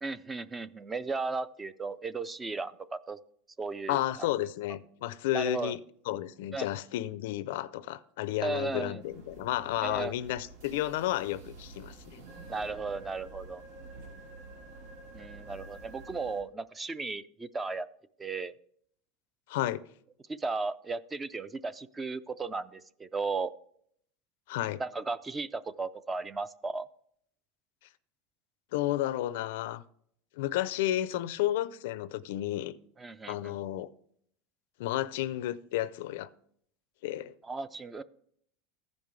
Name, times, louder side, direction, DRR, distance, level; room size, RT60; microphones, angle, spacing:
voice 1, 0.0-3.2 3.6-4.3 5.3-5.8 6.5-6.7 8.4-9.0 9.8-10.1 12.5-13.6 15.1-17.9 18.2-18.5 20.3-23.5 24.8-26.9 33.0-33.6 37.4-38.0, right 3 dB, 15° right, 0.3 m, -35 dB
voice 2, 3.9-5.8 6.1-12.2 19.5-19.8 24.5-24.8 28.7-29.8 30.4-32.7 33.3-33.9 34.8-36.3 37.0-37.3, left 14 dB, 75° left, 0.4 m, -32 dB
sound 1, 9.0-16.4, right 3 dB, 85° right, 1.6 m, -49 dB
15.0 x 5.2 x 3.2 m
supercardioid pair, 145°, 0 cm